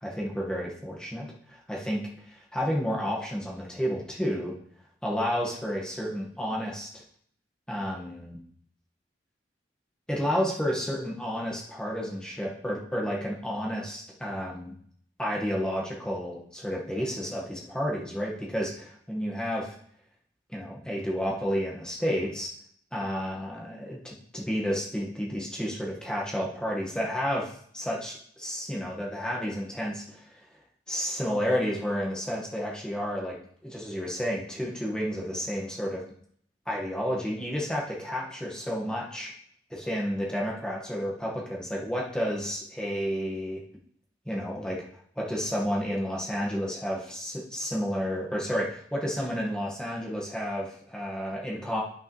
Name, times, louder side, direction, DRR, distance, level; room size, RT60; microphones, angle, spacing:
voice 1, 0.0-4.5 5.0-6.9 7.7-8.4 10.1-14.7 15.2-19.7 20.5-22.5 22.9-30.4 30.9-33.4 33.6-36.0 36.7-39.3 39.7-43.6 44.2-44.8 45.1-51.8, equal, 5° left, -3 dB, 1.5 m, -31 dB
12.5 x 6.0 x 3.2 m, 0.63 s
head